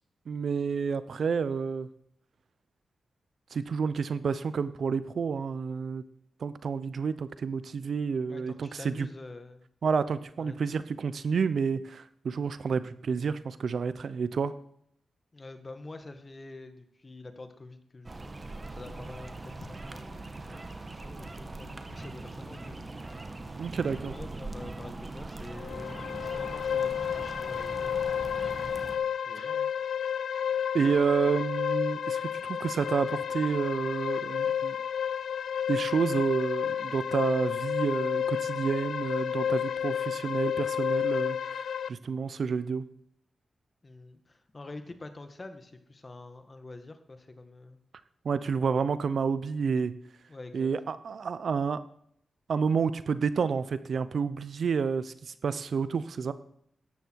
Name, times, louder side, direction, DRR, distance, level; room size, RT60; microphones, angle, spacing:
voice 1, 0.3-1.9 3.5-6.0 6.4-9.1 9.8-14.5 23.6-24.1 30.7-34.8 35.7-41.6 41.9-42.8 48.2-49.9 50.5-51.8 52.5-56.3, right 5 dB, 65° right, 14 dB, 0.7 m, -29 dB
voice 2, 8.3-9.7 10.4-10.6 15.3-22.9 23.7-28.0 29.2-29.7 43.8-47.8 50.3-50.7, left 2 dB, 35° left, 8 dB, 1.8 m, -46 dB
sound 1, 18.0-29.0, right 2 dB, 30° right, 1.5 m, -41 dB
sound 2, 25.6-41.9, left 8 dB, 80° left, 0.4 m, -31 dB
13.5 x 10.5 x 4.7 m, 0.69 s
cardioid pair, 65°, 0 cm